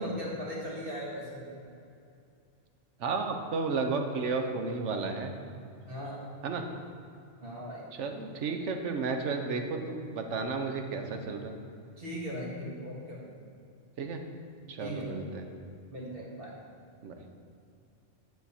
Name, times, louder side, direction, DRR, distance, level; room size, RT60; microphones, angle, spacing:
voice 1, 0.0-1.7 5.8-6.2 7.4-7.8 12.0-13.2 14.8-15.1 15.9-16.5, equal, 50° right, -4 dB, 1.9 m, -38 dB
voice 2, 3.0-5.3 6.4-6.6 7.9-11.5 14.0-14.2 14.7-15.4 17.0-17.2, right 4 dB, 75° right, 5 dB, 1.1 m, -33 dB
9.5 x 6.2 x 4.3 m, 2.5 s
omnidirectional pair, 1.2 m